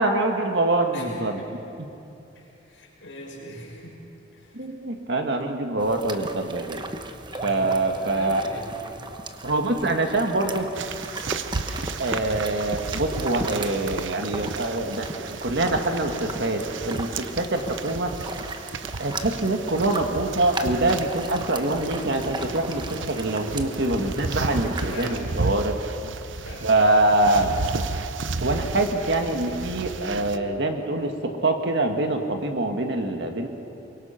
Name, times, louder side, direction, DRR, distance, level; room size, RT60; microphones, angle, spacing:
voice 1, 0.0-1.4 1.8-1.9 4.5-6.8 7.4-8.4 9.4-10.7 12.0-18.1 19.0-25.7 26.6-27.6 28.4-33.5, right 2 dB, 65° right, 4 dB, 1.9 m, -24 dB
voice 2, 0.9-1.5 2.3-4.0 4.3-4.5 7.3-8.7 24.9-25.2 26.3-26.7, left 1 dB, 80° left, -3 dB, 6.2 m, -40 dB
sound 1, 5.8-25.1, right 2 dB, 25° right, 1.0 m, -37 dB
sound 2, 10.8-30.4, right 4 dB, 80° right, 0.8 m, -33 dB
24.0 x 22.5 x 5.9 m, 2.7 s
head